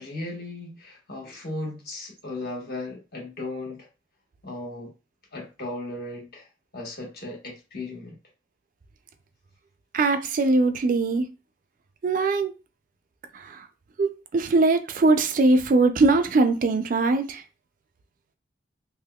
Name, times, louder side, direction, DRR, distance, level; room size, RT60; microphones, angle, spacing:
voice 1, 0.0-3.9 4.4-4.9 5.3-8.2, left 2 dB, 55° left, 1.2 m, -36 dB
voice 2, 9.9-11.3 12.0-12.5 13.3-13.6 14.0-17.4, right 3 dB, 45° right, 0.3 m, -21 dB
3.4 x 2.9 x 2.3 m
head